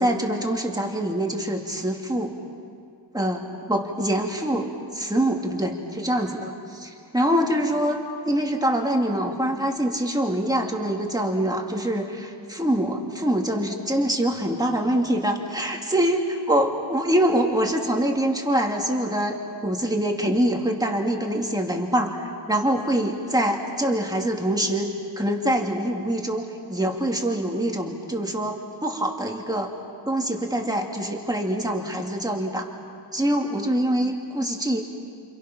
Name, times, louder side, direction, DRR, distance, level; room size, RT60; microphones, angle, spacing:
voice 1, 0.0-2.4 3.1-6.5 6.8-19.4 19.6-22.2 22.5-29.7 30.1-32.7 33.1-34.8, right 1 dB, 10° right, 1 dB, 2.4 m, -24 dB
29.0 x 28.5 x 5.9 m, 2.3 s
wide cardioid pair, 165°, 45 cm